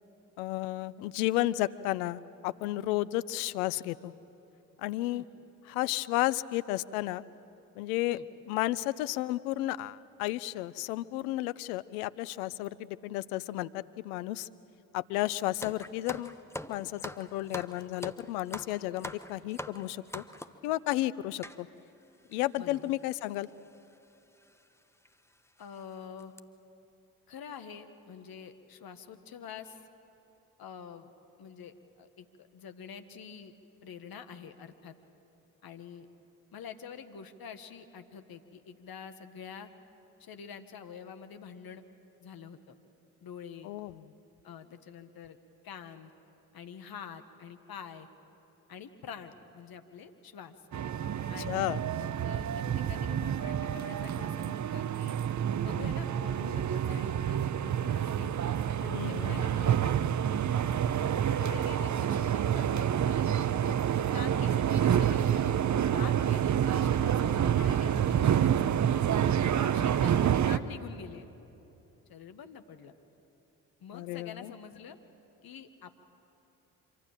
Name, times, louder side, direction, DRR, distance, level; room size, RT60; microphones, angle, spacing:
voice 1, 0.4-4.1 4.8-5.2 5.7-7.2 7.8-8.2 8.5-14.5 14.9-16.4 16.7-20.2 20.6-21.7 22.3-23.5 43.6-44.0 51.5-51.8 58.9-59.5 73.9-74.5, left 16 dB, 80° left, 18 dB, 0.6 m, -32 dB
sound 1, 15.6-20.7 21.4-21.6 22.3-22.4 22.6-22.8 23.7-23.9 24.4-24.5 25.1-25.2 25.6-25.8 26.2-26.4, left 1 dB, 5° left, 1.2 m, -42 dB
voice 2, 22.6-22.9 25.6-26.3 27.3-29.8 30.6-31.1 31.4-33.5 33.8-34.9 35.6-36.1 36.5-39.7 40.2-41.8 42.2-42.7 43.2-43.7 44.4-45.4 45.6-46.1 46.5-48.1 48.7-50.5 51.3-55.2 55.6-58.3 58.8-59.9 60.5-60.6 61.2-62.9 63.6-65.6 65.9-68.9 69.5-71.3 72.1-72.9 73.8-75.0 75.4-76.0, left 7 dB, 55° left, 9 dB, 1.7 m, -46 dB
sound 2, 50.7-70.6, right 9 dB, 40° right, 0.9 m, -28 dB
26.0 x 24.5 x 7.6 m, 3.0 s
hypercardioid pair, 45°, 44 cm